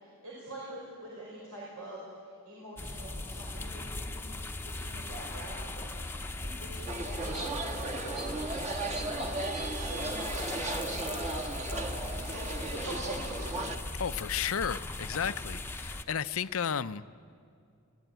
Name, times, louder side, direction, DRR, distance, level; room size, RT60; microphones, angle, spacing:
voice 1, 0.0-4.3 4.6-9.3 9.7-11.3 11.7-13.3, right 1 dB, 80° right, -5 dB, 5.6 m, -45 dB
sound 1, 2.8-16.0, left 2 dB, 10° left, 0.9 m, -39 dB
sound 2, 6.9-13.8, right 2 dB, 30° right, 1.7 m, -36 dB
voice 2, 14.0-17.2, left 7 dB, 65° left, 14 dB, 0.6 m, -33 dB
25.0 x 17.0 x 9.1 m, 2.4 s
head